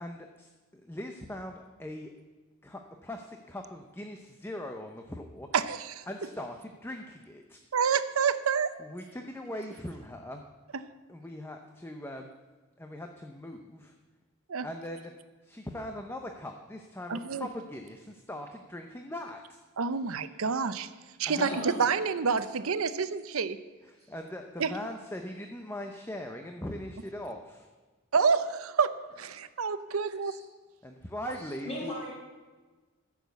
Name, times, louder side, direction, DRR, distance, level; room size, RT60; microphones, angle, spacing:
voice 1, 0.0-2.1 2.6-5.5 6.1-7.6 8.8-10.4 11.1-12.3 12.8-13.9 14.6-15.1 15.4-19.6 21.2-21.5 23.8-27.7 29.9-30.0 30.8-32.0, left 1 dB, 10° left, 4 dB, 0.7 m, -41 dB
voice 2, 5.5-6.0 7.7-8.7 14.5-14.7 17.1-17.5 19.8-20.9 21.2-23.6 24.6-24.7 28.1-30.4, right 5 dB, 85° right, 12 dB, 0.7 m, -28 dB
voice 3, 21.4-21.8 30.2-30.4 31.4-32.1, left 1 dB, 30° left, -4 dB, 5.2 m, -38 dB
13.0 x 7.3 x 8.2 m, 1.3 s
head